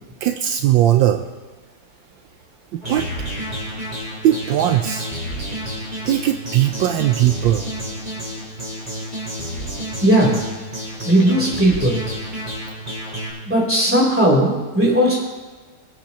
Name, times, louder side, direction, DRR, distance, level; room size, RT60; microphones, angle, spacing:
voice 1, 0.2-1.2 2.7-3.1 4.2-5.1 6.0-7.6, right 12 dB, 80° right, 7 dB, 1.3 m, -18 dB
sound 1, 2.8-13.3, equal, 20° right, 5.1 m, -30 dB
voice 2, 10.0-10.4 11.0-12.0 13.4-15.2, right 1 dB, 5° right, -4 dB, 3.3 m, -17 dB
24.5 x 8.4 x 3.0 m, 1.3 s
omnidirectional pair, 2.1 m